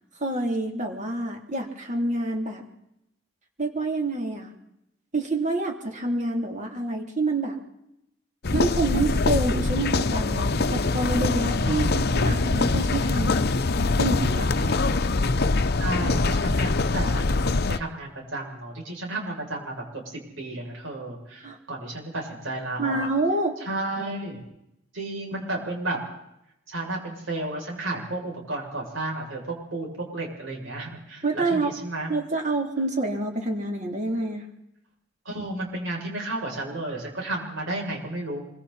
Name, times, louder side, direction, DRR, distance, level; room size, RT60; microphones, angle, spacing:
voice 1, 0.2-2.6 3.6-4.5 5.1-7.6 8.5-13.5 14.0-14.7 21.4-21.6 22.8-23.5 31.2-31.7 32.1-34.5, right 2 dB, 40° right, 2 dB, 3.5 m, -27 dB
sound 1, 8.4-17.8, left 3 dB, 55° left, 0.8 m, -23 dB
voice 2, 11.6-12.5 14.6-15.0 15.8-23.1 23.6-24.4 24.9-26.0 26.7-32.1 35.2-38.4, right 2 dB, 80° right, -1 dB, 7.6 m, -33 dB
26.0 x 24.0 x 4.4 m, 0.83 s
head